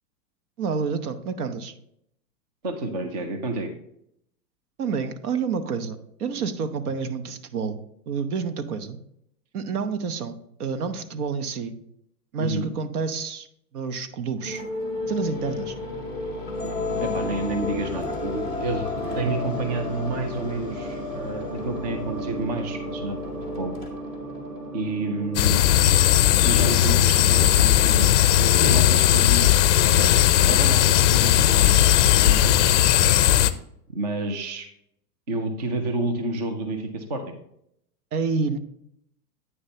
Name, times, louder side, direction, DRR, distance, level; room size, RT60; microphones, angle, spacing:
voice 1, 0.6-1.7 4.8-7.8 8.1-9.0 9.5-11.7 12.3-13.5 13.7-14.6 15.1-15.8 38.1-38.6, right 5 dB, 65° right, 10 dB, 1.0 m, -29 dB
voice 2, 2.6-3.7 12.4-12.7 17.0-18.9 19.1-23.2 23.6-23.8 24.7-25.7 26.4-29.5 29.8-30.1 30.4-32.6 33.9-34.7 35.3-37.4, right 2 dB, 30° right, 7 dB, 0.4 m, -29 dB
sound 1, 14.4-27.3, left 2 dB, 10° right, 1.0 m, -32 dB
sound 2, 25.3-33.5, left 12 dB, 50° left, 0.5 m, -18 dB
8.9 x 6.6 x 2.8 m, 0.73 s
supercardioid pair, 160°, 48 cm